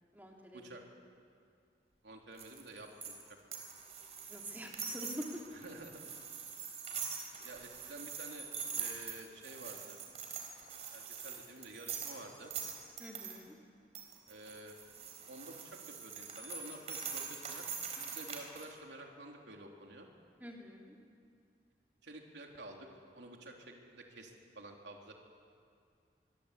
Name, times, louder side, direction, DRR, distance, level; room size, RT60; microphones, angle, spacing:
voice 1, 0.1-0.6 4.3-5.3 13.0-13.5 20.4-20.9, equal, 10° right, -1 dB, 3.0 m, -46 dB
voice 2, 2.0-3.4 5.5-6.1 7.4-8.5 8.8-10.0 10.9-12.5 14.3-14.8 15.3-17.7 18.0-20.1 22.0-22.9 23.1-25.1, right 2 dB, 90° right, 1 dB, 3.6 m, -50 dB
sound 1, 2.4-13.4 14.0-18.7, right 6 dB, 40° right, 4.1 m, -43 dB
24.5 x 23.5 x 8.5 m, 2.3 s
head